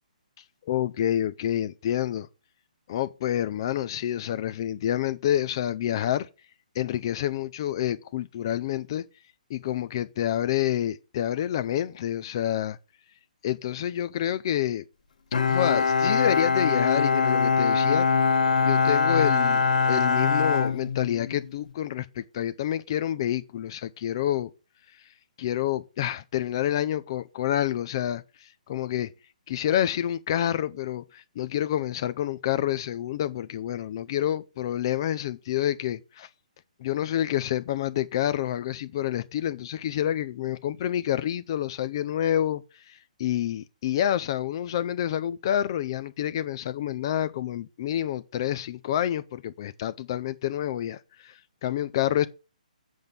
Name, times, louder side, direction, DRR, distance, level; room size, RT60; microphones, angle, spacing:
voice 1, 0.7-2.3 2.9-6.3 6.8-9.0 9.5-12.8 13.4-14.8 15.5-18.1 18.6-24.5 25.4-29.1 29.5-36.3 36.8-52.3, left 11 dB, 35° left, 0.5 m, -28 dB
Bowed string instrument, 15.3-21.5, left 5 dB, 70° left, 1.8 m, -23 dB
7.8 x 5.4 x 6.8 m
hypercardioid pair, 165°, 4 cm